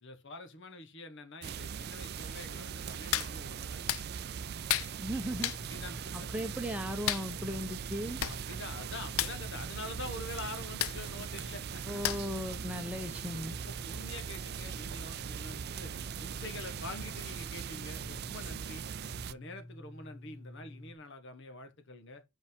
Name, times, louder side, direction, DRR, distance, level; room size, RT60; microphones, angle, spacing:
voice 1, 0.0-3.9 5.7-6.3 8.3-11.8 13.6-15.9 16.2-18.9 19.2-22.2, left 2 dB, 55° left, 1.4 m, -46 dB
sound 1, 1.4-19.3, right 7 dB, 45° right, 0.4 m, -40 dB
Hands, 3.1-3.3 3.9-4.0 4.7-4.9 5.4-5.6 7.1-7.3 7.9-8.0 8.2-8.4 8.6-8.8 9.1-9.4 10.8-11.0 12.0-12.4 12.8-12.9, left 13 dB, 70° left, 0.5 m, -31 dB
sound 2, 5.0-21.0, left 1 dB, 30° left, 1.3 m, -50 dB
voice 2, 5.0-5.5 6.1-8.2 11.8-13.6, equal, 5° right, 1.0 m, -37 dB
5.8 x 5.3 x 5.3 m
head